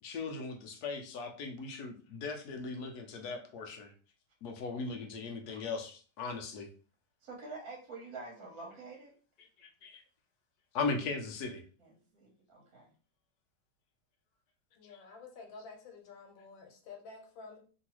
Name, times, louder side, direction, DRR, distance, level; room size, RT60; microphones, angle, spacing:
voice 1, 0.0-3.9 4.4-6.7 9.4-10.0 10.7-11.6 14.8-14.9, left 4 dB, 70° left, 4 dB, 1.0 m, -38 dB
voice 2, 7.2-9.1 11.8-12.9, right 3 dB, 60° right, 0 dB, 1.1 m, -47 dB
voice 3, 14.7-17.6, left 4 dB, 85° left, 3 dB, 1.5 m, -50 dB
3.0 x 2.7 x 2.9 m, 0.39 s
omnidirectional pair, 2.0 m